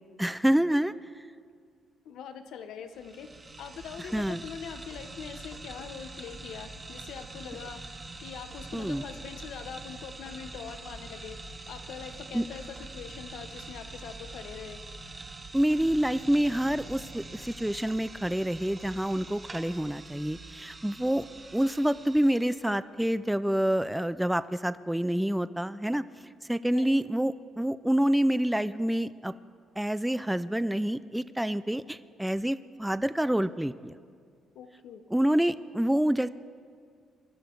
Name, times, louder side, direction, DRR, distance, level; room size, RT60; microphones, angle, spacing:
voice 1, 0.2-0.9 4.1-4.4 8.7-9.0 12.3-12.4 15.5-21.2 21.5-26.0 26.5-29.3 29.8-33.9 35.1-36.3, right 1 dB, 5° right, 14 dB, 0.4 m, -27 dB
voice 2, 2.0-3.3 3.6-7.8 8.2-11.4 11.7-14.8 26.7-26.9 34.5-35.0, left 7 dB, 80° left, 8 dB, 1.0 m, -43 dB
sound 1, 2.9-22.6, right 2 dB, 30° right, 1.3 m, -44 dB
21.5 x 12.0 x 4.7 m, 2.1 s
cardioid pair, 90°, 0 cm